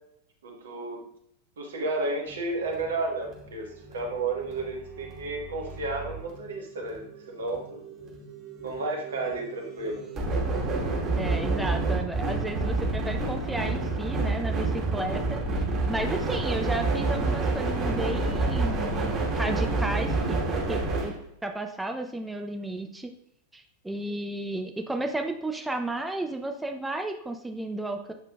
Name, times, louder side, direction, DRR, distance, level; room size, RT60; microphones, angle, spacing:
voice 1, 0.4-1.0 1.6-7.9 8.6-10.1, right 2 dB, 65° right, 1 dB, 1.4 m, -32 dB
sound 1, 2.3-21.2, right 3 dB, 30° right, 2.0 m, -29 dB
voice 2, 11.2-19.1 19.4-20.4 20.7-21.1 21.4-23.1 23.5-28.1, right 1 dB, 5° right, 5 dB, 0.6 m, -33 dB
8.1 x 5.7 x 2.3 m, 0.73 s
figure-of-eight pair, 90°, 0 cm